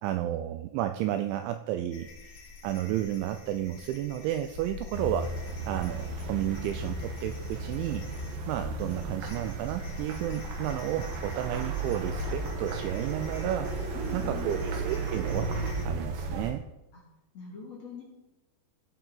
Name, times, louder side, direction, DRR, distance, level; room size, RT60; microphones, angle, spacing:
voice 1, 0.0-5.3 5.7-8.1 8.5-13.7 14.1-15.5 15.8-16.7, right 12 dB, 85° right, 9 dB, 2.7 m, -32 dB
sound 1, 1.9-15.8, left 4 dB, 70° left, 2.0 m, -48 dB
sound 2, 4.9-16.5, right 3 dB, 65° right, 2.3 m, -34 dB
voice 2, 13.9-14.8 16.9-17.0 17.3-18.0, left 5 dB, 40° left, -4 dB, 3.0 m, -42 dB
16.0 x 8.4 x 4.0 m, 0.96 s
omnidirectional pair, 5.8 m